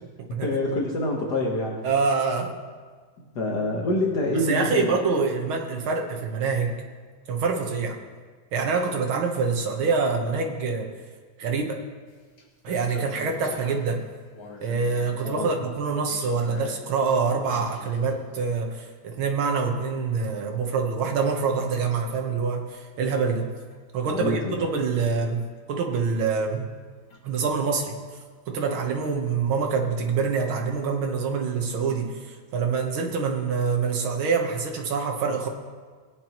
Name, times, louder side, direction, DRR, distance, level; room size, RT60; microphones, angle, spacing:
voice 1, 0.4-1.9 3.4-5.0 15.2-15.6 24.0-24.6, left 1 dB, 55° left, -1 dB, 1.7 m, -26 dB
voice 2, 1.8-2.5 4.3-6.7 7.3-8.0 8.5-10.9 11.4-11.8 12.6-14.0 14.6-23.5 23.9-26.7 27.2-27.9 28.5-35.5, right 5 dB, 80° right, 2 dB, 2.0 m, -26 dB
sound 1, 12.1-12.2 12.4-14.0 14.3-15.6 16.1-16.9 17.4-18.6 19.3-19.5 21.2-21.4 23.0-23.1 23.5-23.8 26.2-26.3 26.6-26.7 27.1-27.5 29.9-30.0, left 4 dB, 85° left, 2.4 m, -42 dB
17.5 x 9.4 x 3.0 m, 1.5 s
omnidirectional pair, 2.3 m